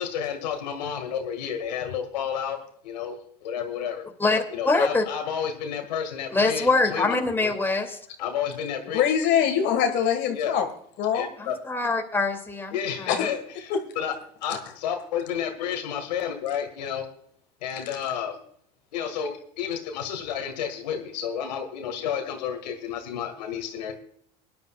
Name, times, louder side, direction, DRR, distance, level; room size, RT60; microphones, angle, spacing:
voice 1, 0.0-2.6 2.8-4.0 4.5-7.2 7.4-7.5 8.2-9.0 10.3-10.6 11.1-11.5 12.7-14.1 14.4-17.1 17.6-18.4 18.9-23.9, left 8 dB, 85° left, 5 dB, 1.8 m, -31 dB
voice 2, 4.2-5.0 6.3-8.0 11.4-13.3, left 3 dB, 10° left, 3 dB, 2.5 m, -24 dB
voice 3, 8.9-10.7 11.0-11.3 13.1-13.3 13.7-13.8 14.5-14.6, left 8 dB, 60° left, 5 dB, 1.7 m, -23 dB
22.0 x 10.5 x 2.3 m, 0.65 s
hypercardioid pair, 85°, 21 cm